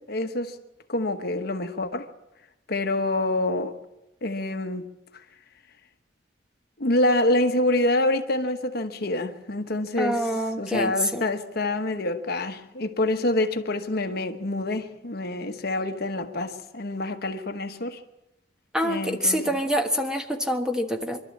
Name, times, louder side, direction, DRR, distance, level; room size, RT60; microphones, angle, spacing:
voice 1, 0.1-0.6 0.9-2.1 2.7-3.7 4.2-4.9 6.8-10.3 10.6-18.0 18.8-19.6, left 2 dB, 55° left, 1.1 m, -26 dB
voice 2, 10.0-11.2 18.7-21.2, equal, 5° right, 1.3 m, -26 dB
25.0 x 12.5 x 8.5 m
head